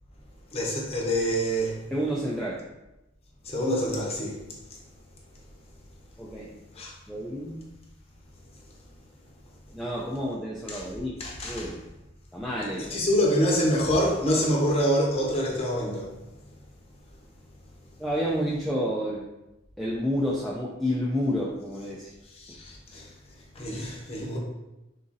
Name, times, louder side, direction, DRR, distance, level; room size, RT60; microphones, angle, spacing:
voice 1, 0.5-1.8 3.4-4.4 6.8-6.9 10.7-10.8 11.2-11.7 12.8-16.1 22.4-23.1 23.6-24.4, equal, 30° left, -2 dB, 0.7 m, -26 dB
voice 2, 1.9-2.6 6.2-6.5 7.1-7.6 9.7-11.1 11.4-11.8 12.3-13.0 18.0-19.2 19.8-22.1, equal, ahead, -6 dB, 0.3 m, -29 dB
3.8 x 2.5 x 3.9 m, 0.96 s
head